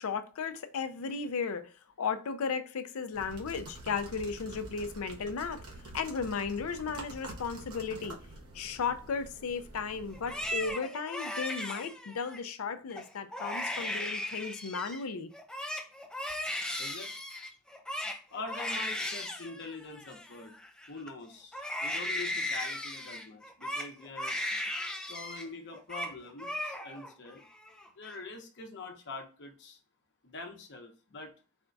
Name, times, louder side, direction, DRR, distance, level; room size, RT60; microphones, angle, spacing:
voice 1, 0.0-1.7 2.0-5.6 5.9-8.2 8.5-15.3, left 5 dB, 70° left, 0.5 m, -35 dB
sound 1, 3.1-10.7, right 2 dB, 75° right, 1.0 m, -47 dB
Crying sobbing, 10.1-12.4 12.9-13.1 13.3-15.0 15.3-21.1 21.5-25.5 25.7-26.1 26.4-27.1 27.5-28.1, left 1 dB, 5° left, 0.4 m, -37 dB
voice 2, 16.8-17.1 18.3-20.6 20.9-24.4 25.1-27.4 27.9-29.8 30.2-31.3, left 3 dB, 50° left, 0.8 m, -44 dB
4.3 x 2.3 x 3.8 m
head